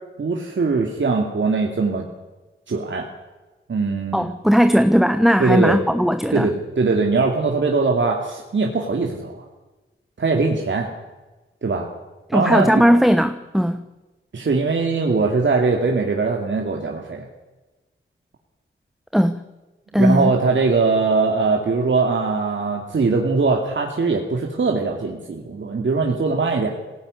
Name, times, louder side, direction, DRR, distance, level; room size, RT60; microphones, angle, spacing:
voice 1, 0.2-2.1 2.7-3.0 3.7-4.3 5.4-5.8 6.3-9.5 10.2-10.9 11.6-11.9 12.3-12.8 14.3-17.3 19.9-26.7, right 4 dB, 65° right, 1 dB, 2.6 m, -21 dB
voice 2, 4.1-6.5 12.3-13.8 19.1-19.4 19.9-20.3, equal, ahead, 9 dB, 1.1 m, -17 dB
21.0 x 17.5 x 9.8 m, 1.2 s
cardioid pair, 65°, 21 cm